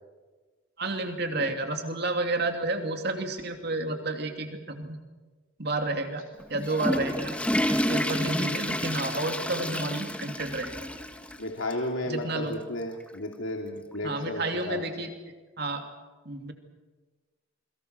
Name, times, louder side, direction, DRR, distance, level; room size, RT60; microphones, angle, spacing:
voice 1, 0.8-5.0 5.6-6.2 6.5-7.4 7.7-10.8 12.1-12.5 14.0-15.1 15.6-15.8 16.2-16.5, right 2 dB, 55° right, 5 dB, 2.8 m, -30 dB
Water / Toilet flush, 6.4-11.4 11.7-11.8 12.5-12.6 13.9-14.0, equal, 5° left, 1.4 m, -30 dB
voice 2, 11.4-14.8, left 1 dB, 80° left, 1 dB, 2.6 m, -34 dB
28.0 x 22.5 x 6.7 m, 1.3 s
head